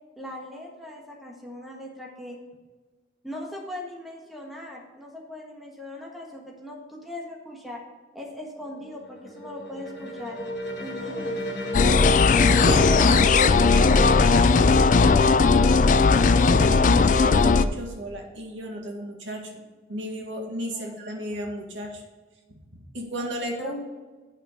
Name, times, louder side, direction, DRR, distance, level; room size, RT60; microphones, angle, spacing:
voice 1, 0.2-2.4 3.2-7.8 8.1-10.4 10.8-11.4 20.7-20.9 23.6-23.7, left 1 dB, ahead, -2 dB, 1.4 m, -39 dB
sound 1, 8.7-16.4, equal, 65° left, 1.8 m, -33 dB
sound 2, 11.7-17.6, left 4 dB, 45° left, 0.4 m, -17 dB
voice 2, 12.6-15.9 16.5-19.5 19.9-22.0 22.5-23.9, equal, 85° right, 1 dB, 1.9 m, -34 dB
10.0 x 5.7 x 5.0 m, 1.3 s
head